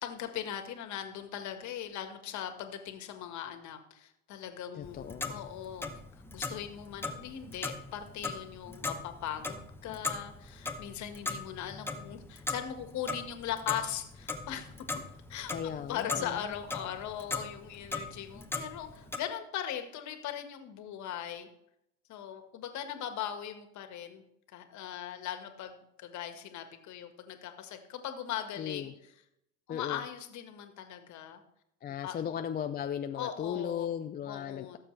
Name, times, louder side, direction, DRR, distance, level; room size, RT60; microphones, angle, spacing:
voice 1, 0.0-5.9 6.3-14.7 15.3-21.5 22.1-24.2 24.5-28.9 29.7-31.4 32.0-32.4 33.2-33.9 34.3-34.8, left 10 dB, 45° left, 7 dB, 1.7 m, -39 dB
voice 2, 4.7-5.4 15.5-16.5 28.6-28.9 29.7-30.0 31.8-34.8, left 9 dB, 25° left, 7 dB, 0.5 m, -36 dB
Clock, 4.8-19.2, left 3 dB, 5° left, 1.0 m, -39 dB
17.5 x 7.2 x 3.3 m, 0.81 s
hypercardioid pair, 90°, 38 cm